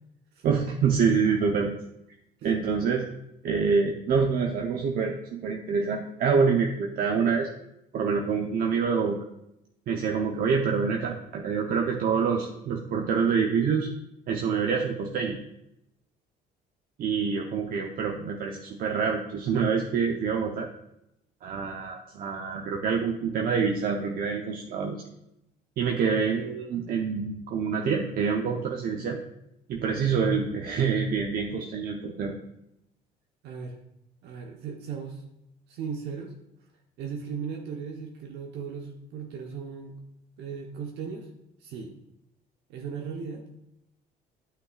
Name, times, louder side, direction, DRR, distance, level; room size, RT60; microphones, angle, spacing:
voice 1, 0.4-1.7 2.4-3.0 3.4-7.5 7.9-9.2 9.9-13.9 14.3-15.4 17.0-20.7 21.4-25.0 25.8-29.2 29.7-32.3, right 5 dB, 60° right, 1 dB, 0.9 m, -26 dB
voice 2, 33.4-33.8 34.2-35.2 35.7-36.3 37.0-40.0 40.4-41.3 41.6-41.9 42.7-43.4, right 6 dB, 80° right, 1 dB, 1.0 m, -37 dB
11.5 x 5.9 x 2.4 m, 0.83 s
cardioid pair, 110°, 17 cm